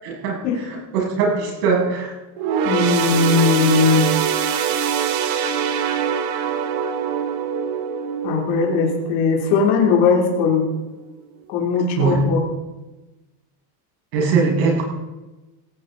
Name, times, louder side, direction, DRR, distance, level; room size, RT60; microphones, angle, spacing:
voice 1, 0.0-2.1 12.0-12.2 14.1-14.8, right 5 dB, 70° right, -2 dB, 6.8 m, -21 dB
sound 1, 2.4-10.0 10.5-10.6 11.5-11.6, right 8 dB, 45° right, 1.4 m, -24 dB
voice 2, 2.6-4.1 8.2-10.6 11.5-12.4, left 5 dB, 45° left, -1 dB, 3.1 m, -18 dB
16.5 x 16.5 x 3.9 m, 1.1 s
supercardioid pair, 170°, 49 cm